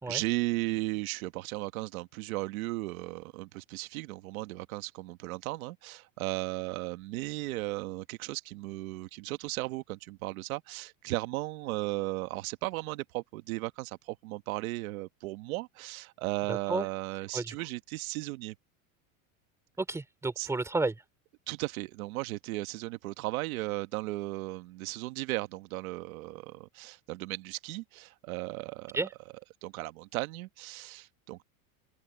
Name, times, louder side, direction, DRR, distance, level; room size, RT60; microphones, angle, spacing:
voice 1, 0.1-18.5 20.4-20.5 21.5-29.0 29.6-31.4, right 20 dB, 85° right, 1.3 m, -36 dB
voice 2, 16.5-16.9 17.3-17.6 19.8-21.0 28.9-29.1, right 3 dB, 5° right, 3.7 m, -32 dB
open air
cardioid pair, 175°, 41 cm